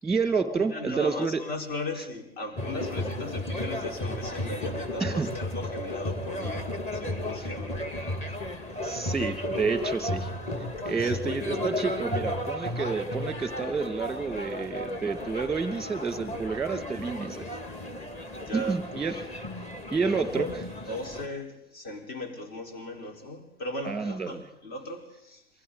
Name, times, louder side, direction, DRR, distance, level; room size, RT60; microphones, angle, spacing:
voice 1, 0.0-1.4 5.0-5.3 8.8-10.3 10.8-17.5 18.5-19.3 19.9-20.5 23.8-24.4, right 4 dB, ahead, 10 dB, 2.0 m, -29 dB
voice 2, 0.5-7.9 8.3-8.4 10.8-11.2 16.9-17.1 18.3-18.8 20.0-20.5 20.9-25.4, left 1 dB, 50° left, 3 dB, 4.7 m, -37 dB
sound 1, 2.6-21.3, left 1 dB, 20° left, 2.2 m, -34 dB
28.0 x 24.0 x 4.0 m, 0.79 s
figure-of-eight pair, 95°, 31 cm